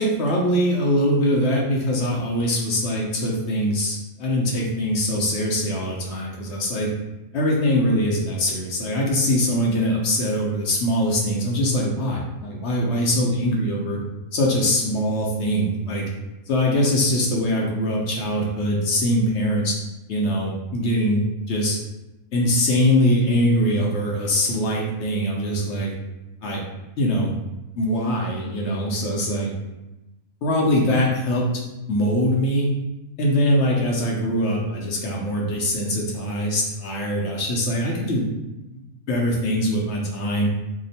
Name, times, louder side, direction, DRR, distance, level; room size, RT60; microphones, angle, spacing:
voice 1, 0.0-6.9 7.3-14.0 14.3-16.0 16.5-19.8 20.1-21.8 22.3-25.9 26.4-26.6 27.0-27.3 27.8-29.5 30.4-31.5 31.9-32.7 33.2-38.3 39.1-40.5, equal, 60° left, -2 dB, 0.8 m, -22 dB
2.8 x 2.1 x 4.0 m, 0.98 s
omnidirectional pair, 1.5 m